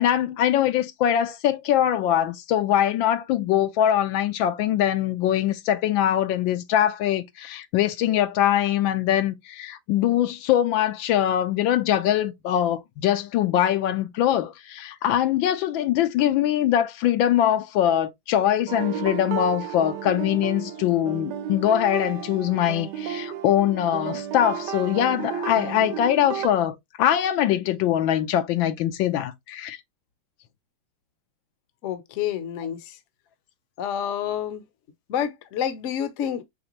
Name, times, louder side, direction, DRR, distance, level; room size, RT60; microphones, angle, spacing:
voice 1, 0.0-29.8, left 11 dB, 85° left, 1.4 m, -22 dB
sound 1, 18.7-26.5, right 9 dB, 70° right, 1.2 m, -33 dB
voice 2, 31.8-33.0 33.8-34.6 35.1-36.4, left 9 dB, 60° left, 0.8 m, -28 dB
5.2 x 3.3 x 2.9 m
omnidirectional pair, 2.1 m